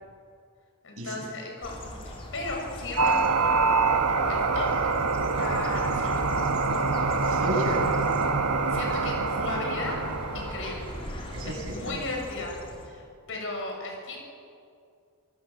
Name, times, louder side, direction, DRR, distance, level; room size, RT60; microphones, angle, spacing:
voice 1, 0.8-3.6 4.1-4.7 5.3-6.3 8.7-10.0 10.3-11.0 11.4-12.6 12.8-14.2, left 2 dB, 60° left, 1 dB, 6.6 m, -36 dB
sound 1, 1.6-12.9, left 1 dB, 25° left, 3.4 m, -39 dB
sound 2, 3.0-10.9, right 4 dB, 90° right, 1.5 m, -25 dB
voice 2, 7.2-7.9 11.3-12.0, right 1 dB, 65° right, -2 dB, 7.2 m, -32 dB
27.5 x 19.5 x 7.4 m, 2.4 s
head